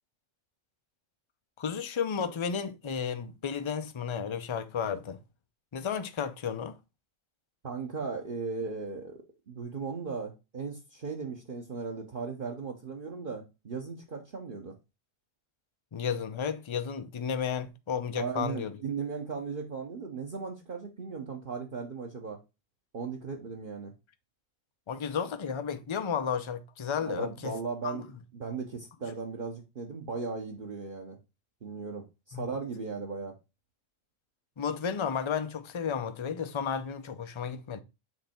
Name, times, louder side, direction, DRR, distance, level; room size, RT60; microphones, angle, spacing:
voice 1, 1.6-5.2 5.7-6.8 15.9-18.8 24.9-27.5 27.8-28.0 32.3-32.5 34.6-37.8, left 7 dB, 35° left, 0.5 m, -33 dB
voice 2, 7.6-9.2 9.5-14.7 18.2-22.4 22.9-23.9 27.0-28.1 28.3-31.2 31.6-33.3, right 5 dB, 45° right, 1.1 m, -37 dB
7.6 x 3.4 x 4.3 m
omnidirectional pair, 1.3 m